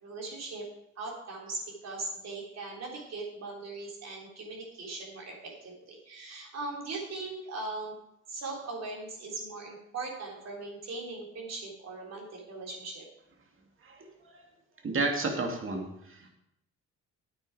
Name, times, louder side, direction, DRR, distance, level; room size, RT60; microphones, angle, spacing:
voice 1, 0.0-0.7 1.0-7.9 8.3-13.0, right 3 dB, 60° right, -2 dB, 3.7 m, -39 dB
voice 2, 14.8-16.3, right 3 dB, 45° right, 2 dB, 2.3 m, -31 dB
9.4 x 8.7 x 4.9 m, 0.81 s
cardioid pair, 90°, 30 cm